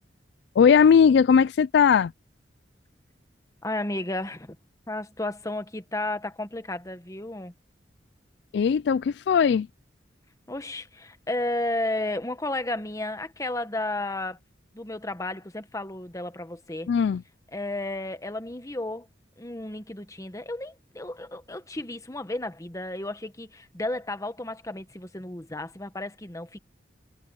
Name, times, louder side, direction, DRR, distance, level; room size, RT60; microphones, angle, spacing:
voice 1, 0.6-2.1 8.5-9.7 16.9-17.2, left 7 dB, 60° left, 0.3 m, -19 dB
voice 2, 3.6-4.6 4.9-7.5 10.5-14.4 14.7-16.9 17.5-19.1 19.4-26.6, left 2 dB, 15° left, 1.2 m, -33 dB
head